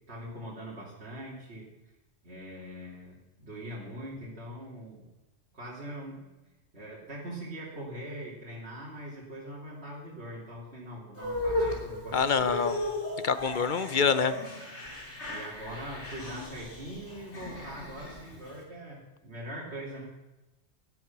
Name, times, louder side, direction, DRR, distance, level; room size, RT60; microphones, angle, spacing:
voice 1, 0.1-1.7 2.2-5.1 5.5-12.7 13.9-14.1 15.2-20.1, right 1 dB, 70° right, -5 dB, 3.7 m, -42 dB
sound 1, 11.2-18.6, left 1 dB, 85° left, 3.6 m, -36 dB
voice 2, 12.1-12.8 13.2-14.3, left 6 dB, 50° left, 14 dB, 0.9 m, -26 dB
19.0 x 11.0 x 6.1 m, 1.1 s
omnidirectional pair, 1.1 m